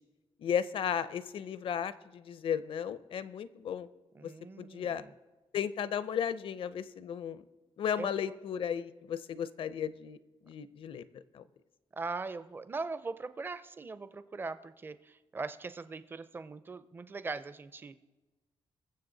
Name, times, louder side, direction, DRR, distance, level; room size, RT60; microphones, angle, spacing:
voice 1, 0.4-3.9 4.2-4.3 4.6-5.0 5.5-7.4 7.8-10.2 10.4-11.0 11.3-11.4, left 8 dB, 60° left, 15 dB, 0.6 m, -34 dB
voice 2, 4.1-5.1 8.0-8.4 11.9-18.0, right 4 dB, 20° right, 13 dB, 0.5 m, -40 dB
21.5 x 7.5 x 3.9 m, 1.1 s
wide cardioid pair, 165°, 10 cm